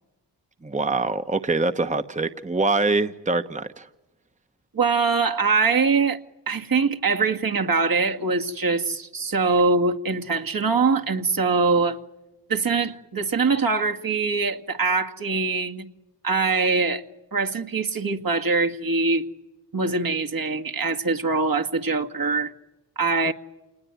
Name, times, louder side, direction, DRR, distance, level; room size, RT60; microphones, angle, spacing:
voice 1, 0.6-3.9, right 3 dB, 15° right, 9 dB, 1.2 m, -24 dB
voice 2, 4.7-6.2 6.5-12.0 12.5-15.9 16.2-17.0 17.3-19.2 19.7-22.5 23.0-23.3, right 4 dB, 50° right, 3 dB, 2.1 m, -23 dB
28.0 x 19.5 x 9.4 m, 1.1 s
cardioid pair, 45°, 43 cm